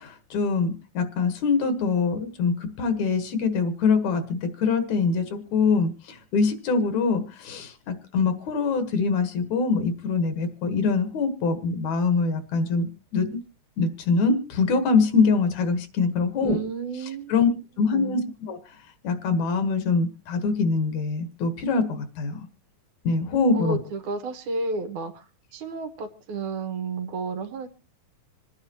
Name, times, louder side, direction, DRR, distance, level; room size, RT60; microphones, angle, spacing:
voice 1, 0.0-13.4 13.8-16.6 17.3-17.5 17.8-18.2 18.5-18.6 19.0-22.4 23.0-23.8, left 4 dB, 75° left, 10 dB, 2.7 m, -24 dB
voice 2, 16.4-17.3 17.8-18.2 23.5-25.2 25.5-27.7, right 4 dB, 90° right, 6 dB, 2.8 m, -32 dB
26.5 x 9.7 x 2.9 m, 0.31 s
omnidirectional pair, 3.3 m